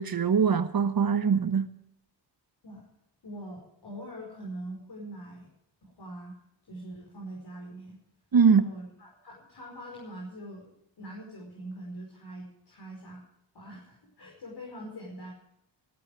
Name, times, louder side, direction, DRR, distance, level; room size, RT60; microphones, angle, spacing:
voice 1, 0.0-1.7 8.3-8.6, right 6 dB, 50° right, 1.2 m, -22 dB
voice 2, 3.2-5.5 5.8-6.4 6.6-8.0 8.4-10.7 11.0-13.2 13.5-15.3, right 1 dB, 60° left, 5.1 m, -43 dB
15.5 x 14.5 x 4.8 m
cardioid pair, 65°, 44 cm